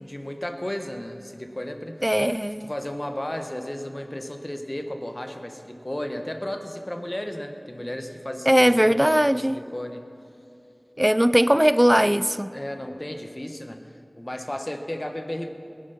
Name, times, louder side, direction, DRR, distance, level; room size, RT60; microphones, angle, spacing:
voice 1, 0.0-2.0 2.6-10.0 12.5-13.8 14.1-15.5, left 1 dB, 35° left, 1.2 m, -34 dB
voice 2, 2.0-2.7 8.5-9.6 11.0-12.5, equal, 15° right, 0.4 m, -19 dB
18.5 x 11.0 x 5.8 m
wide cardioid pair, 45°, 0 cm